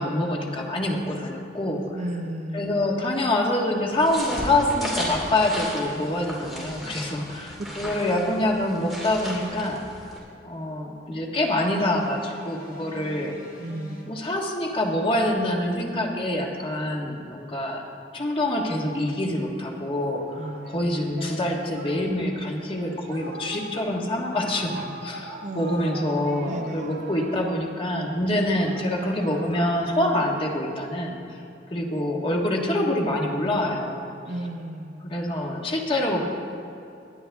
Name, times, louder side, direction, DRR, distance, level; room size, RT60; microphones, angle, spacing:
voice 1, 0.0-2.0 2.5-9.8 10.4-13.3 14.1-17.8 18.1-31.2 31.7-34.1 35.0-36.3, left 1 dB, 30° left, 0 dB, 1.6 m, -26 dB
voice 2, 1.9-3.0 7.6-7.9 13.6-14.2 20.4-20.7 25.4-27.0 34.3-35.2, right 1 dB, 45° right, 5 dB, 0.8 m, -34 dB
sound 1, 3.9-10.2, equal, ahead, 2.9 m, -35 dB
sound 2, 11.4-14.0, left 1 dB, 55° left, 2.9 m, -44 dB
Singing, 19.7-30.7, right 1 dB, 60° right, 1.7 m, -42 dB
19.0 x 11.0 x 3.5 m, 2.7 s
head